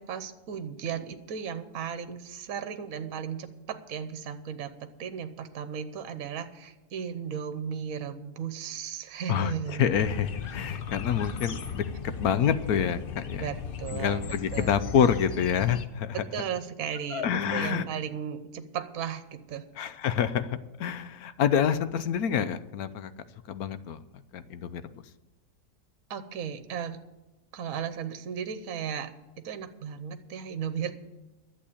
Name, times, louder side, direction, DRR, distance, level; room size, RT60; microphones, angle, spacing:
voice 1, 0.0-9.9 13.4-14.2 14.5-14.8 16.1-19.7 26.1-27.0 27.5-29.1 29.4-30.9, right 8 dB, 65° right, 10 dB, 1.3 m, -35 dB
voice 2, 9.3-13.5 13.9-16.2 17.1-17.9 19.8-23.1 23.5-24.0 24.3-24.8, left 8 dB, 70° left, 13 dB, 1.2 m, -27 dB
sound 1, 9.9-15.9, left 6 dB, 50° left, 0.7 m, -36 dB
11.5 x 8.1 x 8.4 m, 1.1 s
omnidirectional pair, 1.7 m